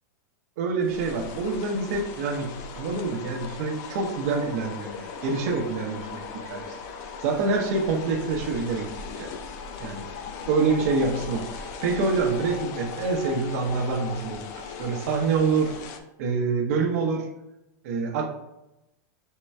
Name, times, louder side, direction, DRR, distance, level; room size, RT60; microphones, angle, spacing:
voice 1, 0.6-6.8 7.0-8.9 9.2-9.3 9.8-10.0 10.5-17.3 17.8-18.3, right 4 dB, 55° right, 2 dB, 0.8 m, -26 dB
sound 1, 0.8-16.0, left 5 dB, 35° left, 0.4 m, -38 dB
3.7 x 2.2 x 4.2 m, 0.89 s
supercardioid pair, 165°, 10 cm